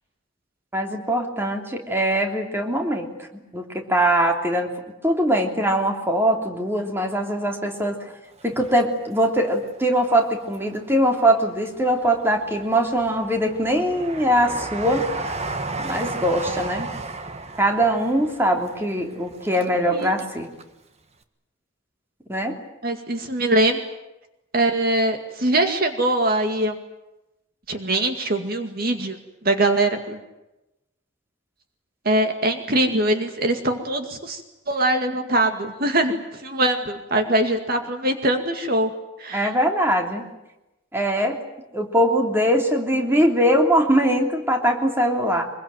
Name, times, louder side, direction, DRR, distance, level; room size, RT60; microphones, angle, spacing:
voice 1, 0.7-3.1 3.5-4.7 5.0-8.1 8.4-15.1 15.8-16.9 17.6-20.5 22.3-22.6 39.3-40.3 40.9-41.4 41.7-45.4, right 1 dB, 10° right, 2 dB, 3.2 m, -22 dB
Train, 8.4-9.6 10.1-11.0 11.6-20.3 20.6-20.7, right 3 dB, 35° right, 1.6 m, -34 dB
voice 2, 22.8-23.8 24.5-26.7 27.7-29.2 29.4-30.2 32.1-34.4 34.7-38.9 39.2-39.5, right 1 dB, 50° right, 6 dB, 2.2 m, -22 dB
24.5 x 22.5 x 9.2 m, 0.95 s
head